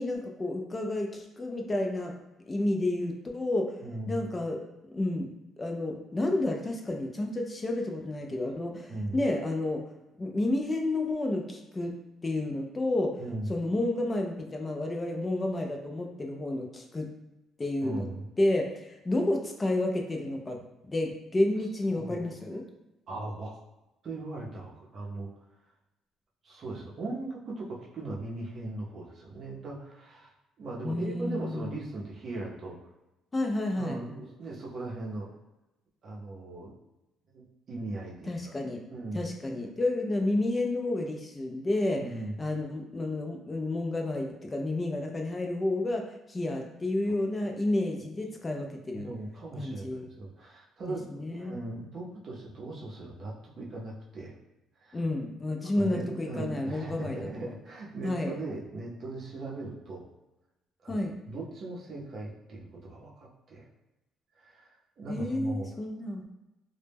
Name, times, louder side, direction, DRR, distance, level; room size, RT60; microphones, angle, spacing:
voice 1, 0.0-2.1 2.5-3.8 4.1-4.6 4.9-9.8 10.2-11.9 12.2-13.2 13.5-17.1 17.6-18.1 18.4-22.6 30.8-31.8 33.3-34.0 38.3-38.8 39.1-42.0 42.4-49.1 49.6-50.0 50.9-51.6 54.9-57.5 58.0-58.3 60.9-61.1 65.1-66.2, left 2 dB, 20° left, 3 dB, 0.3 m, -30 dB
voice 2, 3.8-4.2 8.9-9.2 13.2-13.5 17.8-18.3 21.9-22.4 23.1-23.6 24.0-25.3 26.4-30.3 30.6-32.8 33.7-35.3 36.0-36.7 37.3-38.5 38.9-39.3 42.0-42.3 47.1-47.5 47.9-48.1 48.9-54.3 54.8-55.0 55.8-60.0 60.8-63.6 64.4-65.7, right 2 dB, 40° right, -4 dB, 0.6 m, -39 dB
2.1 x 2.0 x 3.2 m, 0.99 s
cardioid pair, 150°, 0 cm